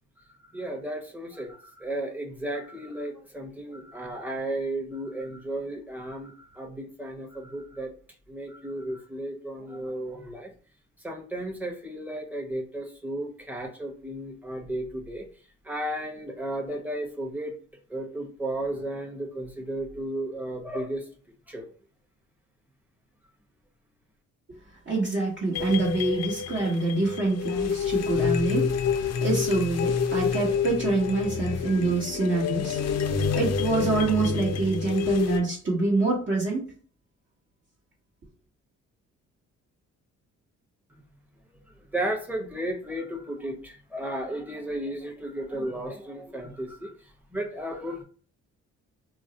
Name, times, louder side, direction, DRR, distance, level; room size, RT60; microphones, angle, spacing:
voice 1, 0.5-7.9 8.3-10.5 11.0-15.3 15.6-17.5 17.9-21.0 21.5-21.6 41.9-46.9 47.3-48.0, right 1 dB, 5° right, 0 dB, 0.9 m, -34 dB
voice 2, 24.9-32.8 33.3-36.7, right 3 dB, 40° right, -5 dB, 1.0 m, -26 dB
sound 1, 25.5-35.4, left 6 dB, 60° left, 0.5 m, -28 dB
2.4 x 2.0 x 3.8 m, 0.42 s
cardioid pair, 90°, 30 cm